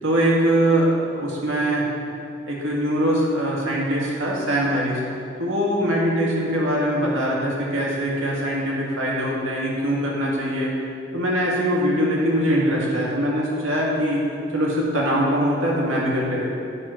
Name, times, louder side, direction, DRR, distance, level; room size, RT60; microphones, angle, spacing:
voice 1, 0.0-1.9 2.5-5.0 5.4-10.7 11.1-14.2 14.5-16.6, equal, 75° right, -4 dB, 2.0 m, -22 dB
11.5 x 4.3 x 5.7 m, 2.6 s
head